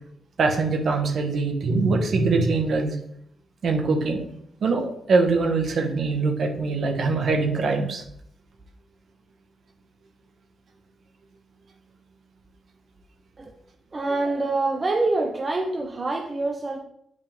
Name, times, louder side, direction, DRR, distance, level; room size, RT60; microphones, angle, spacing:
voice 1, 0.4-2.9 3.6-4.3 4.6-8.0, right 3 dB, 60° right, 4 dB, 1.6 m, -23 dB
voice 2, 13.9-16.8, right 2 dB, 30° right, 3 dB, 1.0 m, -25 dB
9.5 x 5.0 x 3.7 m, 0.71 s
cardioid pair, 85°, 0 cm